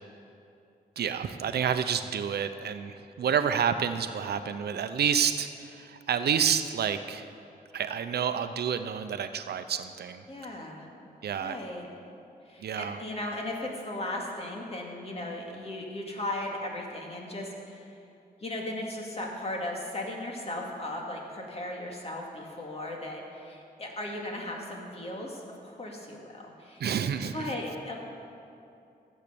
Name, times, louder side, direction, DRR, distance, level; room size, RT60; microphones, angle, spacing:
voice 1, 1.0-7.3 7.7-10.3 11.2-11.6 12.6-13.0 26.8-27.4, right 7 dB, 80° right, 10 dB, 0.7 m, -29 dB
voice 2, 10.3-10.9 11.4-11.9 12.4-17.9 18.4-26.8 27.3-28.0, left 1 dB, 40° left, -1 dB, 2.3 m, -37 dB
15.0 x 8.3 x 6.9 m, 2.7 s
wide cardioid pair, 100°, 16 cm